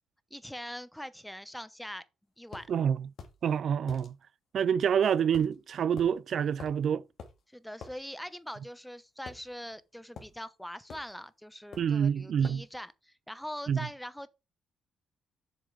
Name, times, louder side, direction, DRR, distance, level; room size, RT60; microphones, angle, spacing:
voice 1, 0.3-2.0 2.4-2.7 7.5-14.3, equal, 5° left, 0.8 m, -42 dB
sound 1, 2.5-2.7 3.2-3.4 3.9-4.1 5.3-5.6 6.0-6.1 6.6-6.8 7.2-7.4 7.8-8.0 9.3-9.8 10.2-10.4 10.9-11.1 11.7-12.0 12.4-12.7, left 5 dB, 60° left, 2.3 m, -47 dB
voice 2, 2.7-3.1 3.4-4.1 4.5-7.0 11.8-12.6 13.7-13.8, right 8 dB, 60° right, 0.3 m, -27 dB
7.4 x 6.8 x 3.4 m
cardioid pair, 90°, 0 cm